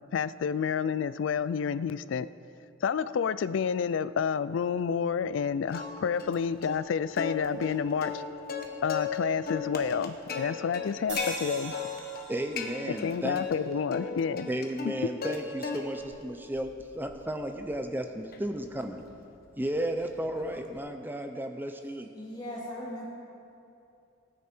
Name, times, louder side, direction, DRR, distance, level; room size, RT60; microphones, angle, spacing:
voice 1, 0.1-2.3 2.8-8.2 8.8-11.7 12.9-14.5 14.8-15.1, left 6 dB, 70° left, 16 dB, 0.3 m, -29 dB
Plucked string instrument, 5.7-6.4 6.6-6.8 7.2-9.2 9.5-11.3 11.7-12.3 12.6-13.5 13.9-15.4 15.6-16.1 16.5-20.8, left 6 dB, 50° left, 1.1 m, -36 dB
sound 1, 11.1-14.4, right 3 dB, 60° right, 2.2 m, -44 dB
voice 2, 12.3-13.5 14.5-19.0 19.6-22.1, right 1 dB, 10° right, 6 dB, 0.5 m, -34 dB
voice 3, 22.1-23.1, left 1 dB, 20° left, -6 dB, 3.0 m, -38 dB
17.0 x 9.6 x 4.4 m, 2.6 s
head